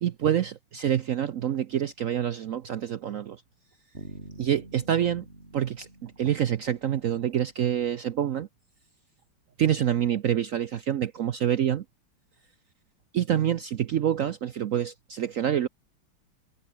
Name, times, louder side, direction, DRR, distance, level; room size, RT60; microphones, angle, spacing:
voice 1, 0.0-3.4 4.4-5.3 5.5-8.5 9.6-11.8 13.1-15.7, right 10 dB, 75° right, 0.7 m, -27 dB
Bass guitar, 3.9-7.7, right 1 dB, 30° right, 6.4 m, -47 dB
omnidirectional pair, 2.3 m